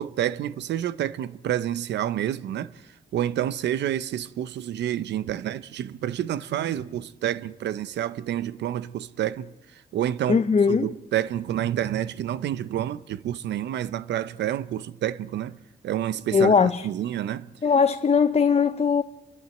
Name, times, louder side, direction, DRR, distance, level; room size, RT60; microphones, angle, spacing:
voice 1, 0.0-2.7 3.1-10.4 10.7-15.6 15.8-17.5, right 11 dB, 85° right, 0.7 m, -29 dB
voice 2, 10.3-10.9 16.3-16.9 17.6-19.0, left 5 dB, 35° left, 0.7 m, -20 dB
29.0 x 12.0 x 7.8 m
cardioid pair, 70°, 18 cm